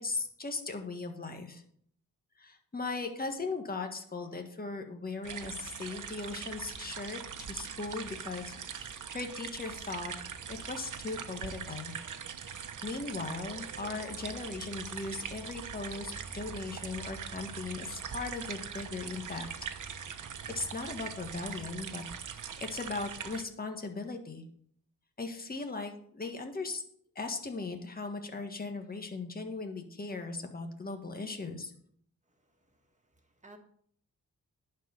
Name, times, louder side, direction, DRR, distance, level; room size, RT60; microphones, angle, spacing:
voice 1, 0.0-1.6 2.4-10.1 10.5-11.9 12.8-19.5 20.5-22.0 22.3-24.4 25.2-26.8 27.1-31.7, left 3 dB, 25° left, 4 dB, 1.7 m, -38 dB
sound 1, 5.2-23.4, right 7 dB, 65° right, 1.1 m, -42 dB
voice 2, 32.3-33.6, right 2 dB, 20° right, 4 dB, 2.0 m, -59 dB
11.0 x 4.7 x 8.1 m, 0.63 s
cardioid pair, 90°, 33 cm